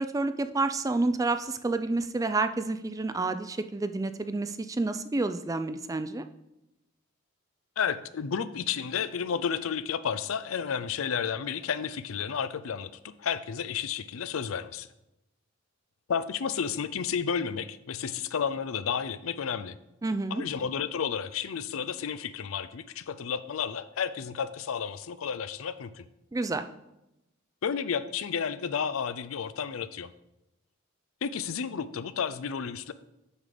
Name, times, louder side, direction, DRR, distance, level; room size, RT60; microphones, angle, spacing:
voice 1, 0.0-6.2 20.0-20.4 26.3-26.6, right 3 dB, 15° right, 10 dB, 0.4 m, -29 dB
voice 2, 7.8-12.9 13.2-14.9 16.1-19.8 20.3-26.1 27.6-30.1 31.2-32.9, left 7 dB, 85° left, 14 dB, 0.5 m, -32 dB
7.2 x 6.6 x 5.1 m, 0.91 s
head